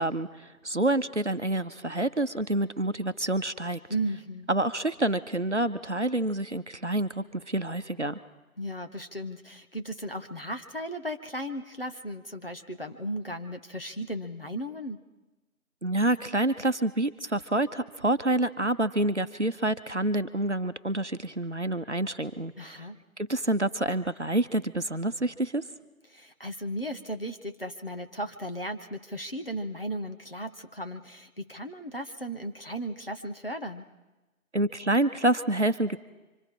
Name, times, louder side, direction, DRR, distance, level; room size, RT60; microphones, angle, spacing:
voice 1, 0.0-3.8 4.5-8.2 15.8-22.8 23.2-25.7 34.5-36.0, right 1 dB, 55° right, 10 dB, 0.9 m, -27 dB
voice 2, 3.9-4.5 8.6-15.0 22.6-23.0 26.1-33.8, right 1 dB, 40° left, 5 dB, 1.2 m, -36 dB
27.0 x 25.5 x 3.8 m, 1.1 s
figure-of-eight pair, 175°, 43 cm